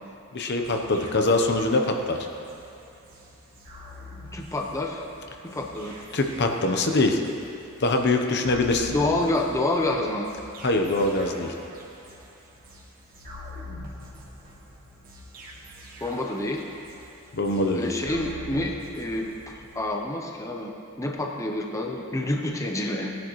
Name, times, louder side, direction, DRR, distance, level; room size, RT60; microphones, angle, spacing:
voice 1, 0.3-2.2 6.1-7.2 7.8-9.0 10.6-11.5 17.3-17.9, left 2 dB, 50° left, 4 dB, 0.9 m, -23 dB
sound 1, 0.6-19.8, left 1 dB, 45° right, 2.3 m, -44 dB
voice 2, 4.3-5.1 5.4-6.0 8.9-10.3 16.0-16.6 17.7-20.7 21.0-23.1, left 1 dB, 15° left, 1 dB, 0.8 m, -28 dB
18.5 x 10.5 x 3.1 m, 2.5 s
head